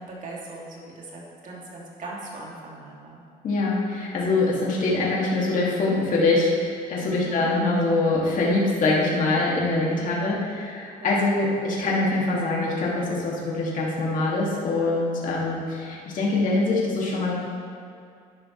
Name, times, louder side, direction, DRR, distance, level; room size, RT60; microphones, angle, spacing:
voice 1, 0.0-3.2 7.0-7.5 10.0-10.5 11.0-11.4, right 1 dB, 50° right, -4 dB, 2.7 m, -40 dB
voice 2, 3.4-17.3, left 2 dB, 50° left, -5 dB, 2.4 m, -24 dB
11.0 x 10.5 x 3.3 m, 2.3 s
cardioid pair, 110°, 17 cm